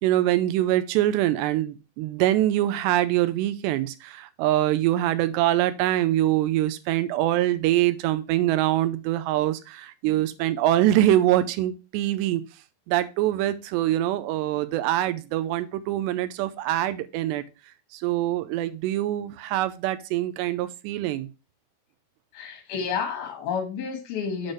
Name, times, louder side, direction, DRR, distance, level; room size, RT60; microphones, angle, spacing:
voice 1, 0.0-12.4 12.9-17.4 17.9-21.3, right 14 dB, 90° right, 2.8 m, -24 dB
voice 2, 22.3-24.5, left 6 dB, 65° left, 3.6 m, -30 dB
7.8 x 6.4 x 3.2 m
omnidirectional pair, 4.9 m